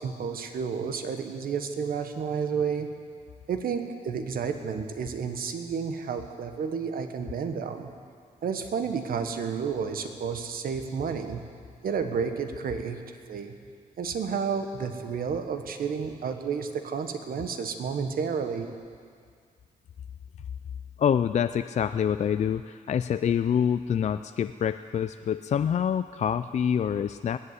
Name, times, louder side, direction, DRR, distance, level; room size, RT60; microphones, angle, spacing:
voice 1, 0.0-2.9 3.5-7.9 8.4-11.5 11.8-13.0 13.3-13.5 14.0-18.7, right 6 dB, 75° right, 7 dB, 1.3 m, -31 dB
voice 2, 21.0-27.4, left 8 dB, 50° left, 11 dB, 0.4 m, -26 dB
20.5 x 8.0 x 8.2 m, 2.2 s
cardioid pair, 85°, 15 cm